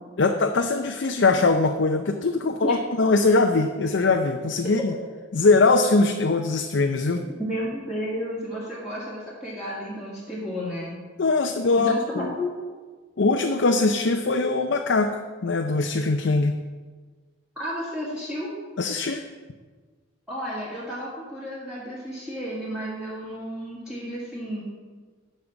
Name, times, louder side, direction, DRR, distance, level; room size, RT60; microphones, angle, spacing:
voice 1, 0.2-4.9 5.3-7.2 11.2-12.3 13.2-16.6 18.8-19.2, left 3 dB, 60° left, 5 dB, 0.5 m, -22 dB
voice 2, 7.4-11.0 11.8-12.7 17.6-18.5 20.3-24.6, equal, 5° right, -9 dB, 2.0 m, -32 dB
9.7 x 5.5 x 7.0 m, 1.4 s
head